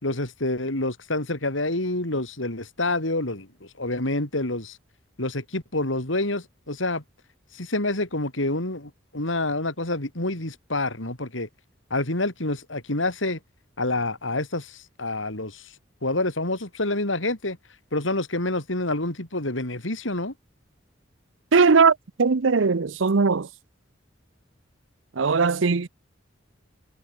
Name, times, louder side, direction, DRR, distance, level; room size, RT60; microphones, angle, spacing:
voice 1, 0.0-3.5 3.8-4.8 5.2-7.0 7.5-11.5 11.9-13.4 13.8-15.7 16.0-17.6 17.9-20.3, left 2 dB, 80° left, 4.7 m, -27 dB
voice 2, 21.5-23.5 25.2-25.9, right 4 dB, 85° right, 0.7 m, -19 dB
head